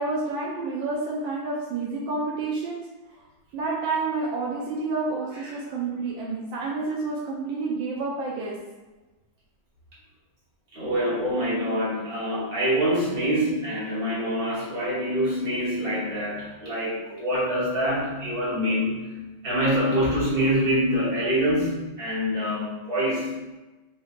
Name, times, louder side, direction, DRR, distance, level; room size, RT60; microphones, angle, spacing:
voice 1, 0.0-2.8 3.5-8.6, right 3 dB, 80° right, -4 dB, 1.3 m, -29 dB
voice 2, 10.7-19.2 19.4-23.3, equal, 45° right, -8 dB, 0.7 m, -25 dB
4.0 x 2.6 x 2.5 m, 1.1 s
omnidirectional pair, 2.1 m